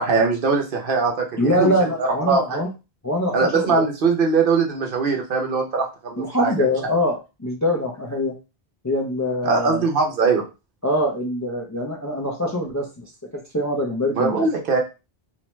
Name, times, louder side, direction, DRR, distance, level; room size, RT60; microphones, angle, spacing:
voice 1, 0.0-1.7 2.0-2.6 3.3-6.5 9.4-10.4 14.2-14.8, right 4 dB, 60° right, 2 dB, 0.8 m, -21 dB
voice 2, 1.4-2.7 3.0-3.8 6.2-8.3 8.8-9.9 10.8-13.0 13.3-14.4, left 1 dB, 25° left, 0 dB, 0.4 m, -23 dB
2.6 x 2.1 x 3.0 m, 0.28 s
omnidirectional pair, 1.0 m